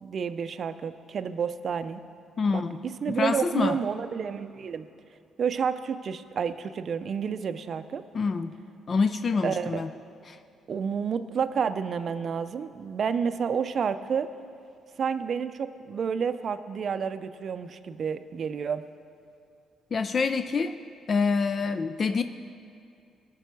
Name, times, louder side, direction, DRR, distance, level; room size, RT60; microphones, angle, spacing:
voice 1, 0.0-2.0 2.5-4.9 5.4-8.0 9.4-9.8 10.7-14.3 15.0-18.8, right 6 dB, 55° right, 11 dB, 0.5 m, -30 dB
voice 2, 2.4-2.8 3.2-3.8 8.1-8.6 8.9-9.9 10.3-10.4 19.9-20.8 21.1-22.2, left 4 dB, 45° left, 10 dB, 0.3 m, -26 dB
18.0 x 6.1 x 4.6 m, 2.4 s
cardioid pair, 90°, 0 cm